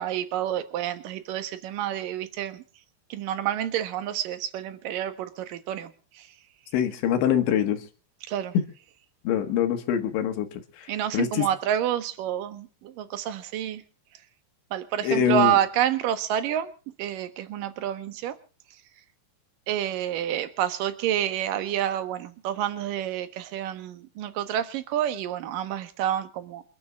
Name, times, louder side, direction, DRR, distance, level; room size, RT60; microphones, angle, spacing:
voice 1, 0.0-2.6 3.1-5.9 6.2-6.3 8.3-8.5 10.9-13.8 14.7-16.7 17.0-18.3 19.7-26.6, right 11 dB, 65° right, 10 dB, 2.4 m, -28 dB
voice 2, 6.7-7.9 9.3-11.5 15.0-15.6, left 9 dB, 75° left, 7 dB, 3.9 m, -24 dB
29.0 x 9.9 x 3.7 m, 0.37 s
omnidirectional pair, 5.5 m